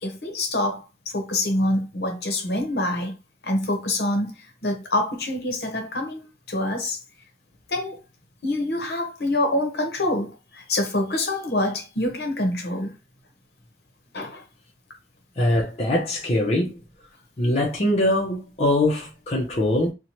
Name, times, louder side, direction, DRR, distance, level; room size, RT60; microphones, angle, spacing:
voice 1, 0.0-0.8 1.1-3.1 3.4-7.0 7.7-8.0 8.4-13.0 14.1-14.4, left 1 dB, 65° left, 0.8 m, -26 dB
voice 2, 15.4-16.8 17.4-19.9, left 1 dB, 35° left, 0.5 m, -22 dB
2.7 x 2.1 x 2.9 m
head